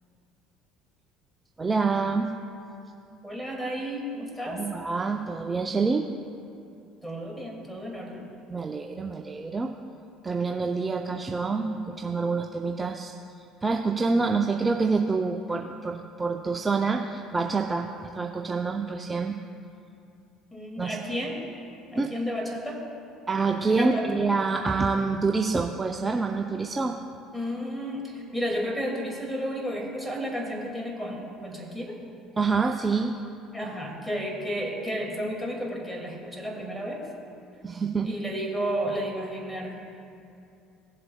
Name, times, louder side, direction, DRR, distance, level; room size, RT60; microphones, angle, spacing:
voice 1, 1.6-2.3 4.5-6.1 8.5-9.7 10.2-17.9 18.1-19.4 20.8-21.0 22.0-22.1 23.3-27.0 32.4-33.1 37.6-38.1, right 4 dB, 25° right, 3 dB, 0.5 m, -27 dB
voice 2, 3.2-4.6 7.0-8.3 20.5-21.4 21.9-22.8 23.8-24.2 27.3-32.0 33.5-37.1 38.0-39.8, equal, 5° left, 0 dB, 2.2 m, -32 dB
17.0 x 7.6 x 2.3 m, 2.6 s
hypercardioid pair, 60°, 0 cm